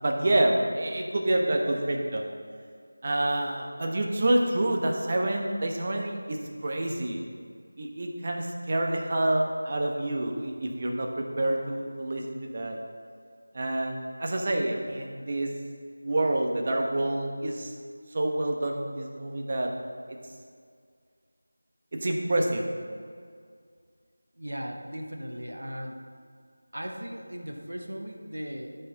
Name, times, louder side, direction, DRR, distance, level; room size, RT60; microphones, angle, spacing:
voice 1, 0.0-2.3 3.0-7.2 7.8-12.8 13.5-15.5 16.0-17.7 18.1-19.7 20.1-20.2 22.0-22.6, right 1 dB, 35° right, 2 dB, 1.1 m, -27 dB
voice 2, 24.4-26.0 26.7-28.7, equal, 85° right, 2 dB, 1.3 m, -37 dB
13.0 x 5.8 x 4.1 m, 2.1 s
figure-of-eight pair, 170°, 0 cm